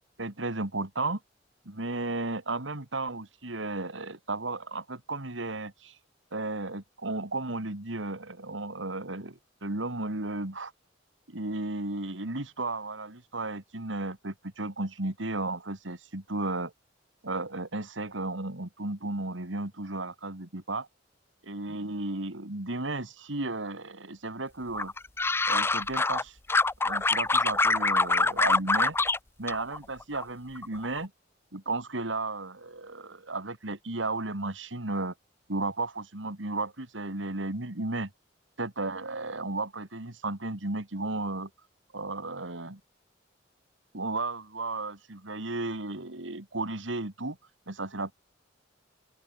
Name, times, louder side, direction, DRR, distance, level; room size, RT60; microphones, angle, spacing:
voice 1, 0.2-1.2 1.7-6.0 6.3-10.7 11.3-16.7 17.2-20.9 21.5-24.9 25.5-26.4 26.8-29.0 29.4-31.1 31.5-35.1 35.5-38.1 38.6-41.5 41.9-42.8 43.9-47.4 47.7-48.1, right 2 dB, 85° right, 2.6 m, -34 dB
sound 1, 24.8-26.2 26.5-29.2 29.5-30.2 30.6-31.0, left 3 dB, 15° left, 0.5 m, -25 dB
open air
head